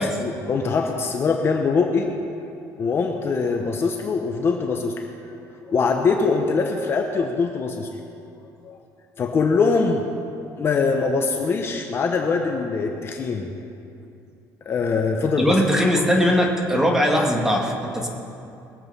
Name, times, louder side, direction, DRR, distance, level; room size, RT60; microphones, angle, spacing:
voice 1, 0.2-2.1 2.8-4.9 5.6-7.9 8.6-8.8 9.2-10.0 10.6-13.5 14.7-15.5, left 4 dB, 35° left, 3 dB, 0.9 m, -22 dB
voice 2, 15.4-18.1, equal, 5° right, 0 dB, 1.9 m, -20 dB
21.5 x 8.0 x 5.5 m, 2.6 s
cardioid pair, 140°, 7 cm